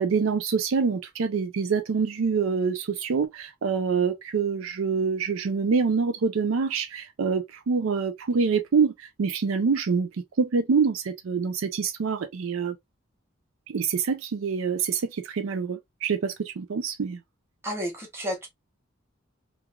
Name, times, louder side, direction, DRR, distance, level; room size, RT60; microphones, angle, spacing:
voice 1, 0.0-10.1 10.4-12.8 13.7-17.2, right 5 dB, 80° right, 0.4 m, -26 dB
voice 2, 17.6-18.5, equal, 15° right, 1.2 m, -31 dB
3.2 x 2.3 x 2.2 m
head